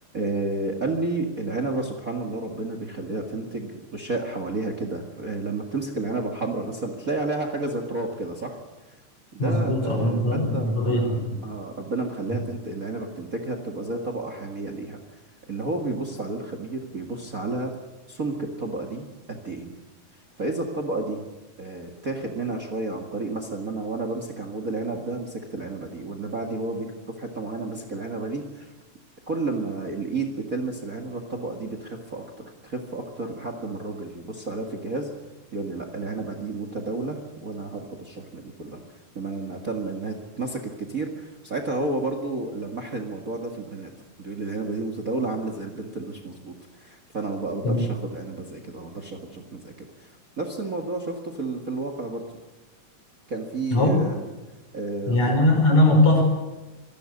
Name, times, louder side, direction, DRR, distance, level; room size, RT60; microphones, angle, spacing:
voice 1, 0.1-8.6 9.3-15.0 15.5-17.7 18.1-19.7 20.4-21.2 21.6-28.7 29.3-35.1 35.5-38.8 39.2-43.9 44.2-50.1 50.4-52.2 53.3-54.2 54.7-55.2, right 3 dB, 35° right, 5 dB, 1.9 m, -31 dB
voice 2, 9.4-11.4 47.6-47.8 53.7-53.9 55.1-56.2, left 1 dB, 65° left, 2 dB, 6.6 m, -20 dB
25.5 x 12.0 x 9.6 m, 1.2 s
omnidirectional pair, 3.4 m